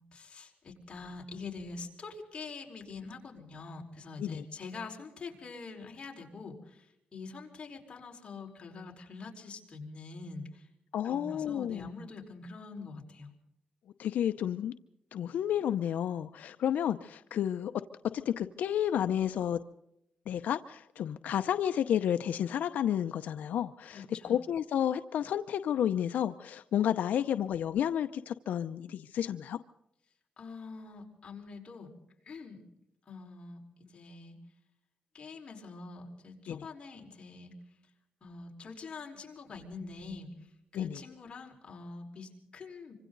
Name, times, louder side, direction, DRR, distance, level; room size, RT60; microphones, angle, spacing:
voice 1, 0.0-10.7 11.0-13.3 23.9-24.3 30.4-31.9 32.2-32.6 33.1-34.4 35.1-37.5 38.2-42.9, left 4 dB, 40° left, 1 dB, 4.9 m, -45 dB
voice 2, 10.9-11.9 14.0-14.7 15.1-17.7 18.2-19.6 20.3-29.6 36.5-36.6 40.7-41.0, left 10 dB, 85° left, 9 dB, 0.7 m, -31 dB
25.5 x 25.5 x 4.0 m, 0.79 s
wide cardioid pair, 130°, 3 cm